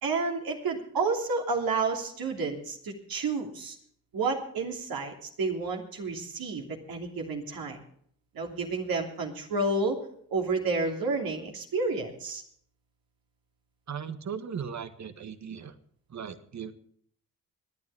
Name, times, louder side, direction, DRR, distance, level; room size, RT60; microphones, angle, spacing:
voice 1, 0.0-3.8 4.1-7.8 8.3-10.0 10.3-12.4, right 3 dB, 60° right, 1 dB, 3.1 m, -30 dB
voice 2, 13.9-15.7 16.1-16.7, right 7 dB, 45° right, 11 dB, 1.6 m, -37 dB
25.5 x 9.8 x 3.5 m, 0.63 s
supercardioid pair, 60°, 40 cm